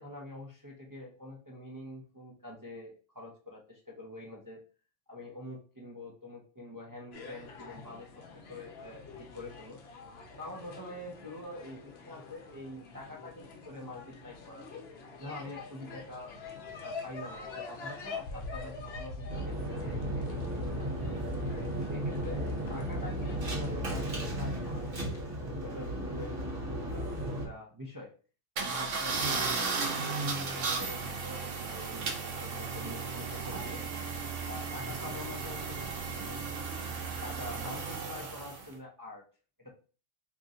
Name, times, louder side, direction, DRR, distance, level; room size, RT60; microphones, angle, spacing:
voice 1, 0.0-4.6 5.1-8.1 8.5-9.8 10.4-14.8 15.2-16.3 16.8-21.2 21.7-25.1 25.6-26.4 26.8-28.1 28.6-33.8 34.5-36.5 37.2-39.2 39.6-39.7, left 1 dB, 25° right, -3 dB, 0.5 m, -46 dB
sound 1, 7.1-25.3, left 3 dB, 60° left, 0.9 m, -45 dB
sound 2, 19.3-27.5, right 1 dB, 55° right, 1.3 m, -35 dB
sound 3, 28.6-38.7, right 4 dB, 90° right, 1.1 m, -35 dB
2.9 x 2.6 x 3.7 m, 0.37 s
omnidirectional pair, 1.2 m